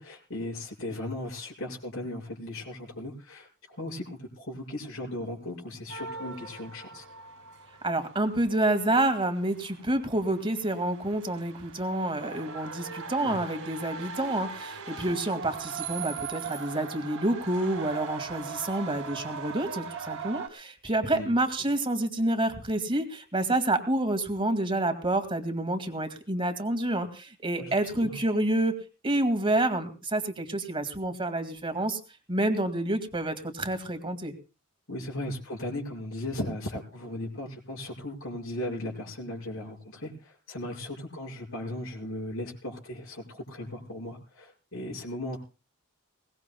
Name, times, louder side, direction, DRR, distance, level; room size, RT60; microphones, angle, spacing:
voice 1, 0.0-7.1 13.2-13.4 21.1-21.3 27.6-28.2 34.9-45.4, left 1 dB, 65° left, -2 dB, 5.7 m, -37 dB
sound 1, 5.9-20.5, right 5 dB, 75° right, 2.8 m, -40 dB
voice 2, 7.8-28.7 29.0-32.0 32.3-34.3, right 1 dB, 25° right, 8 dB, 2.2 m, -28 dB
22.0 x 19.5 x 2.3 m, 0.34 s
head